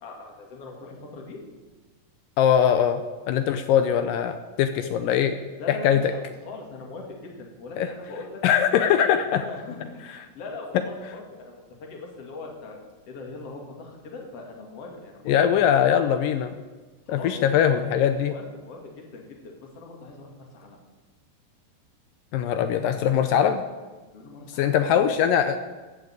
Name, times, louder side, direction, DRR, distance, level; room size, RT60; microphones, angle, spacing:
voice 1, 0.0-1.4 5.6-8.4 9.2-11.5 11.8-12.8 13.1-15.3 17.1-17.8 18.3-20.8 24.1-25.3, left 3 dB, 45° left, 0 dB, 2.9 m, -40 dB
voice 2, 2.4-5.4 5.7-6.1 7.8-7.9 8.4-9.5 15.3-16.5 17.1-18.3 22.3-23.6 24.6-25.6, left 9 dB, 80° left, 9 dB, 2.2 m, -21 dB
15.0 x 6.6 x 8.6 m, 1.3 s
omnidirectional pair, 4.3 m